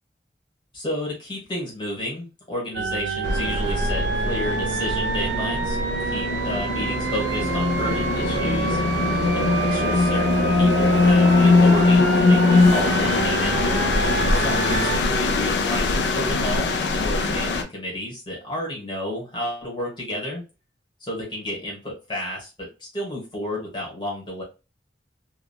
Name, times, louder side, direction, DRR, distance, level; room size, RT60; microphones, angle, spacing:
voice 1, 0.7-5.8 6.0-8.8 9.3-13.6 14.3-20.4 21.0-24.4, left 1 dB, 25° left, -3 dB, 1.3 m, -31 dB
sound 1, 2.7-15.0, right 4 dB, 75° right, 0.4 m, -27 dB
sound 2, 3.2-17.6, left 3 dB, 75° left, 0.5 m, -21 dB
2.9 x 2.3 x 2.2 m, 0.29 s
head